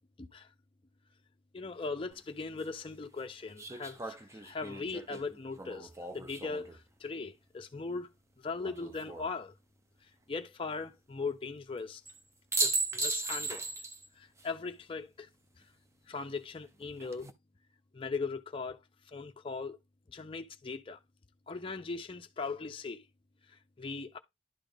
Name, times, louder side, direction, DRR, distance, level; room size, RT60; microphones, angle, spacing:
voice 1, 0.2-0.5 1.5-8.1 8.4-9.5 10.3-12.0 12.6-13.6 14.2-15.3 16.1-17.3 17.9-18.8 19.1-19.8 20.1-21.0 21.5-23.0 23.5-24.2, left 4 dB, 30° left, 0.5 m, -39 dB
sound 1, 2.1-2.2 3.6-6.8 8.6-9.3 12.1-12.2 12.5-14.1 14.4-14.5 16.8-17.3, right 3 dB, 15° right, 0.6 m, -36 dB
11.0 x 4.0 x 3.4 m
head